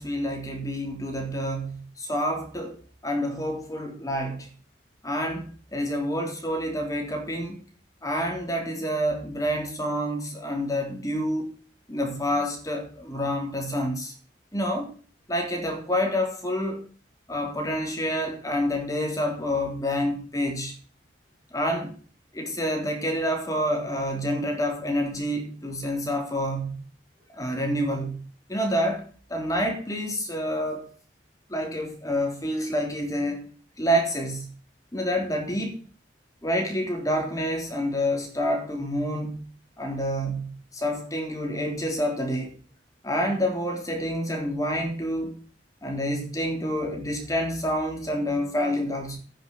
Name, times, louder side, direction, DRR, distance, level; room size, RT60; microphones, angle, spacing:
voice 1, 0.0-2.8 3.0-4.5 5.0-7.6 8.0-11.5 11.9-14.1 14.5-14.9 15.3-16.8 17.3-20.7 21.5-21.9 22.3-26.8 27.3-28.2 28.5-29.0 29.3-30.9 31.5-33.5 33.8-34.5 34.9-35.8 36.4-39.4 39.8-42.5 43.0-45.4 45.8-49.2, equal, 20° left, 2 dB, 3.6 m, -28 dB
9.7 x 6.8 x 8.5 m, 0.40 s
head